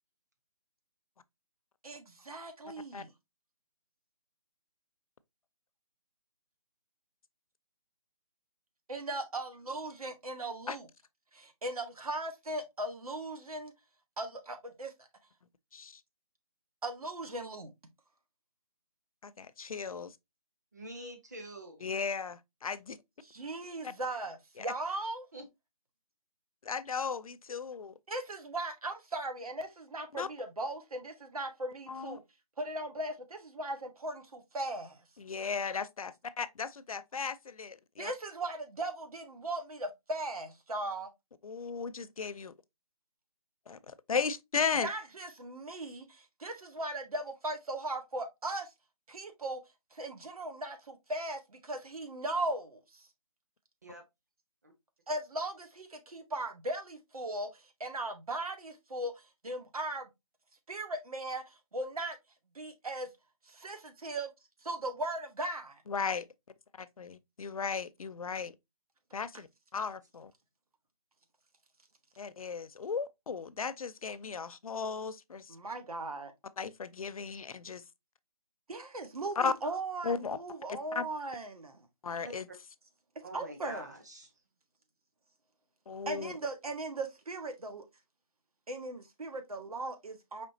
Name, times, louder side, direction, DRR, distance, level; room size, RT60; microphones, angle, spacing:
voice 1, 1.8-3.1 8.9-10.9 11.3-13.7 14.2-15.1 16.8-17.7 23.2-25.3 28.1-32.2 32.6-35.0 38.0-41.1 44.8-48.7 49.1-49.6 49.9-53.1 55.1-60.1 60.7-62.2 62.5-63.1 63.4-64.3 64.6-65.8 75.5-76.3 78.7-81.9 83.3-83.9 86.1-87.8 88.7-90.5, right 2 dB, 75° right, 1.4 m, -38 dB
voice 2, 19.2-20.1 21.8-23.0 23.8-23.9 24.6-24.7 26.6-27.9 30.1-30.3 31.9-32.2 35.2-38.1 41.4-42.5 43.7-44.9 65.9-66.3 66.8-68.5 69.1-69.5 69.7-70.3 72.2-75.6 76.6-77.8 79.4-79.5 80.0-80.4 80.9-81.1 82.0-82.5 85.9-86.3, left 5 dB, 70° left, 0.5 m, -36 dB
voice 3, 20.7-21.8 25.3-25.4 53.8-54.0 54.6-54.7 82.2-82.3 83.2-84.3, right 1 dB, 30° right, 0.9 m, -46 dB
5.0 x 3.4 x 2.7 m
hypercardioid pair, 180°, 19 cm